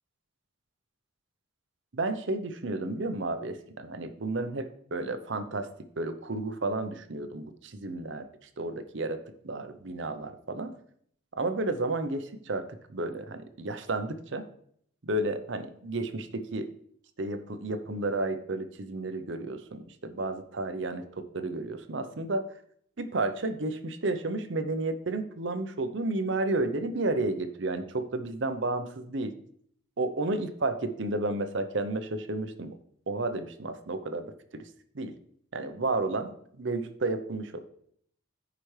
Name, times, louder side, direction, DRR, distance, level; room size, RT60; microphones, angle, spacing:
voice 1, 1.9-5.7 6.0-8.3 8.6-10.7 11.3-12.6 12.9-14.4 15.0-16.7 17.2-22.4 23.0-29.3 30.0-32.7 33.1-34.7 34.9-35.1 35.5-37.6, right 2 dB, 65° right, 9 dB, 0.7 m, -32 dB
14.5 x 5.1 x 3.2 m, 0.65 s
head